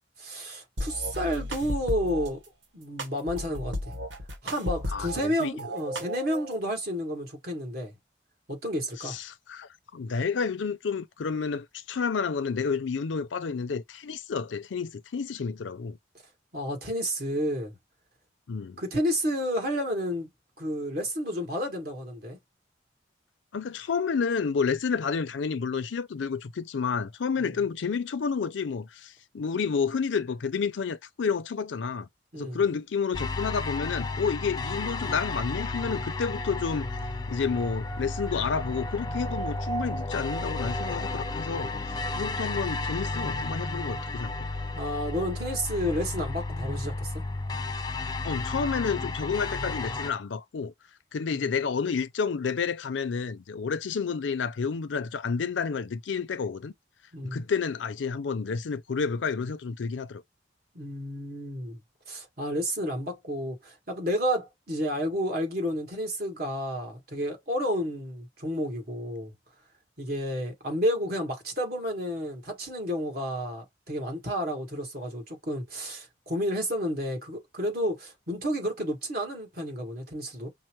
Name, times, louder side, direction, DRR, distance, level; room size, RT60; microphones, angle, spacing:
voice 1, 0.2-2.4 2.7-4.0 4.4-7.9 8.5-9.2 16.5-17.8 18.8-20.3 20.6-22.4 32.3-32.6 44.8-47.1 51.3-51.4 57.1-57.4 60.7-61.8 62.1-69.3 70.0-80.5, equal, 55° right, 1.7 m, -31 dB
sound 1, 0.8-2.3 3.0-5.3 5.6-6.6, equal, 80° right, 1.2 m, -34 dB
voice 2, 4.9-5.5 9.0-16.0 18.5-18.8 23.5-32.1 32.4-36.9 37.3-44.3 48.2-50.7 51.1-56.7 57.2-60.2, left 5 dB, 90° left, 0.5 m, -30 dB
sound 2, 33.1-50.1, left 2 dB, 20° left, 0.4 m, -33 dB
5.4 x 2.0 x 3.0 m
head